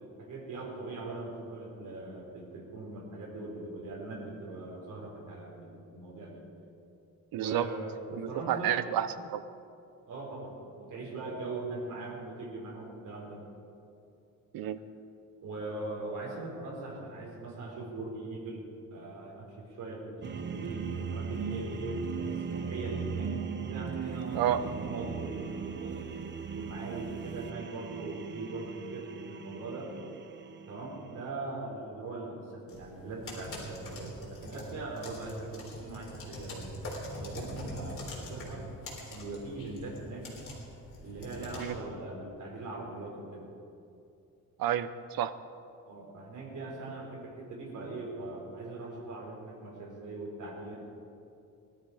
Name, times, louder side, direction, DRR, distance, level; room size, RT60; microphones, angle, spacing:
voice 1, 0.0-6.4 7.3-8.8 10.1-13.4 15.4-18.6 18.9-23.3 23.6-26.2 26.5-29.9 30.7-36.7 37.1-38.7 39.0-40.3 41.0-43.5 45.9-50.8, right 2 dB, 60° right, -3 dB, 4.1 m, -41 dB
voice 2, 7.3-7.7 8.1-9.4 14.5-14.8 24.3-24.6 41.6-41.7 44.6-45.3, right 11 dB, 75° right, 13 dB, 0.8 m, -30 dB
sound 1, 20.2-31.3, right 6 dB, 30° right, 0.7 m, -38 dB
sound 2, 32.7-41.8, left 1 dB, 40° left, 3.6 m, -43 dB
19.5 x 12.5 x 4.9 m, 2.6 s
cardioid pair, 165°, 35 cm